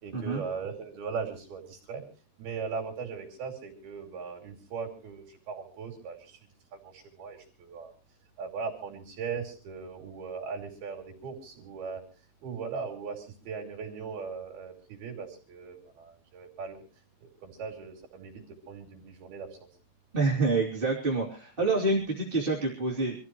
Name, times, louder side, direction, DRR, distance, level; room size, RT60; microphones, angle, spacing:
voice 1, 0.0-2.0 2.4-7.9 8.4-12.0 12.4-16.8 17.2-19.7, right 5 dB, 65° right, 1 dB, 4.7 m, -39 dB
voice 2, 20.1-23.1, right 3 dB, 15° right, -3 dB, 2.3 m, -27 dB
25.5 x 14.5 x 3.1 m, 0.37 s
omnidirectional pair, 4.9 m